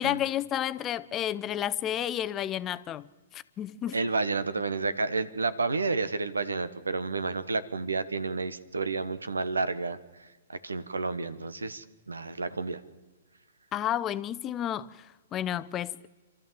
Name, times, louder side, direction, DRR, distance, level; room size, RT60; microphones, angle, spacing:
voice 1, 0.0-4.0 13.7-16.1, left 11 dB, 25° left, 0.7 m, -31 dB
voice 2, 3.9-12.8, right 3 dB, 85° right, 1.3 m, -31 dB
27.0 x 13.5 x 7.5 m
hypercardioid pair, 120°, 0 cm